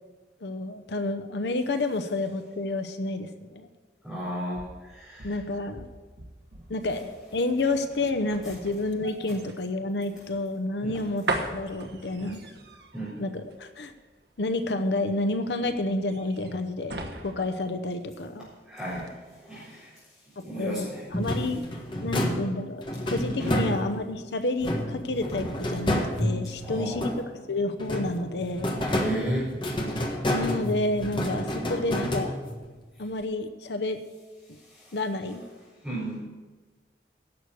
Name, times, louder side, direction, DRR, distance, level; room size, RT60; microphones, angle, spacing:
voice 1, 0.4-3.7 5.2-5.9 6.7-12.4 13.2-13.9 14.4-18.5 20.4-21.7 22.0-28.7 30.3-32.4 33.0-34.0 34.5-34.6 34.9-35.4, left 2 dB, 80° left, 9 dB, 0.8 m, -30 dB
voice 2, 4.0-5.3 10.8-11.0 12.9-13.2 18.7-19.1 19.4-19.9 20.4-21.0 21.3-21.4 23.4-23.7 26.6-27.0 28.8-29.5 34.7-34.9 35.8-36.2, right 1 dB, 5° right, -13 dB, 4.2 m, -34 dB
sound 1, 4.2-18.5 18.9-19.1, right 2 dB, 75° right, 1.2 m, -39 dB
sound 2, 21.1-24.2 24.6-27.4 27.8-32.7, equal, 25° left, 1.4 m, -29 dB
11.5 x 6.9 x 7.9 m, 1.3 s
head